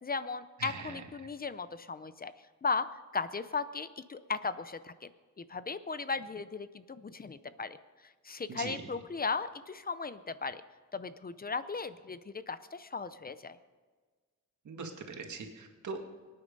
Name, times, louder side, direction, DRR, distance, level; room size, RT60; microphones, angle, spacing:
voice 1, 0.0-2.3 2.6-2.9 3.1-5.1 5.4-7.8 8.2-10.6 10.9-13.6, left 4 dB, 30° left, 14 dB, 0.6 m, -36 dB
voice 2, 0.6-1.0 8.5-8.8 14.7-16.0, right 4 dB, 80° right, 3 dB, 2.1 m, -41 dB
23.5 x 9.5 x 5.4 m, 1.4 s
wide cardioid pair, 130°, 29 cm